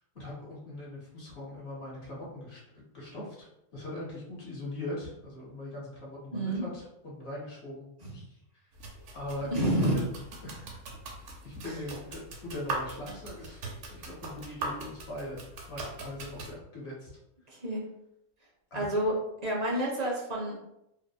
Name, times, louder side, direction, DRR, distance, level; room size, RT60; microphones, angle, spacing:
voice 1, 0.1-3.5 3.7-8.4 9.1-10.0 10.4-10.7 11.2-13.6 13.9-17.1 18.7-18.9, left 1 dB, 60° left, -5 dB, 1.1 m, -41 dB
voice 2, 6.3-6.6 8.0-8.1 9.5-9.9 11.6-11.8 17.6-17.8 18.7-19.1 19.4-20.6, right 1 dB, 45° right, -3 dB, 0.5 m, -29 dB
sound 1, 8.7-16.5, right 2 dB, 80° right, 1.0 m, -41 dB
2.6 x 2.4 x 2.2 m, 0.83 s
omnidirectional pair, 1.3 m